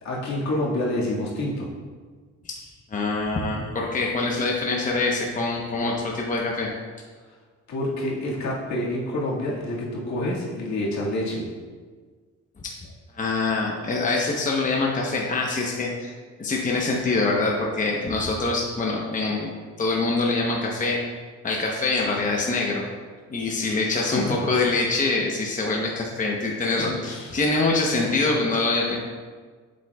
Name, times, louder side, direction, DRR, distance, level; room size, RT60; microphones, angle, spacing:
voice 1, 0.0-1.7 7.7-11.5 23.9-24.4 26.8-27.3, left 1 dB, 65° left, -4 dB, 1.9 m, -28 dB
voice 2, 2.4-6.7 12.6-12.7 13.2-16.1 16.4-19.5 19.8-21.0 21.4-22.8 23.3-29.0, left 3 dB, 25° left, -2 dB, 0.9 m, -24 dB
7.7 x 7.5 x 2.3 m, 1.5 s
cardioid pair, 90°, 30 cm